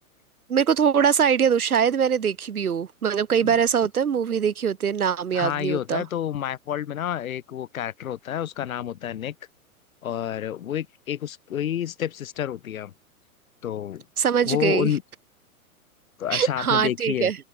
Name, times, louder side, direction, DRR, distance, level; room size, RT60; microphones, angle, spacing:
voice 1, 0.5-6.0 14.2-14.9 16.3-17.4, right 7 dB, 75° right, 4.4 m, -22 dB
voice 2, 5.3-9.3 10.0-12.9 13.6-14.0 14.4-15.0 16.2-17.3, left 10 dB, 65° left, 3.0 m, -29 dB
figure-of-eight pair, 110°, 44 cm